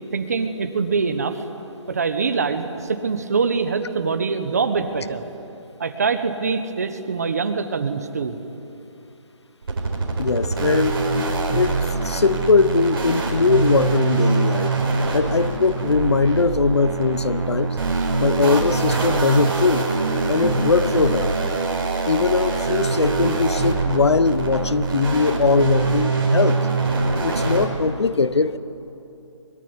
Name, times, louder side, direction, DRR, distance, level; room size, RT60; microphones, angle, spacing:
voice 1, 0.1-1.4 1.9-5.2 5.8-8.4 17.9-18.1, right 5 dB, 30° right, 9 dB, 1.3 m, -24 dB
sound 1, 9.6-27.7, right 3 dB, 45° right, 5.0 m, -23 dB
voice 2, 10.2-11.0 11.5-11.8 12.0-14.7 15.1-17.8 18.2-19.8 20.3-21.4 22.0-26.6 27.2-28.6, left 4 dB, 60° left, 15 dB, 1.0 m, -20 dB
24.0 x 22.5 x 9.7 m, 2.8 s
hypercardioid pair, 175°, 16 cm